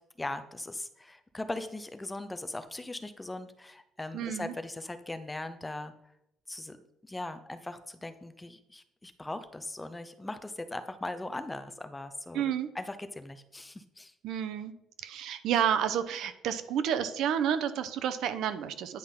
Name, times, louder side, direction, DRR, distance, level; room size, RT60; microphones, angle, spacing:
voice 1, 0.2-5.9 6.5-6.8 7.0-14.1, left 2 dB, 10° left, 10 dB, 0.6 m, -39 dB
voice 2, 4.1-4.5 12.3-12.7 14.2-14.7 15.0-19.0, right 9 dB, 75° right, 11 dB, 0.7 m, -30 dB
10.0 x 5.9 x 3.8 m, 0.80 s
cardioid pair, 135°, 0 cm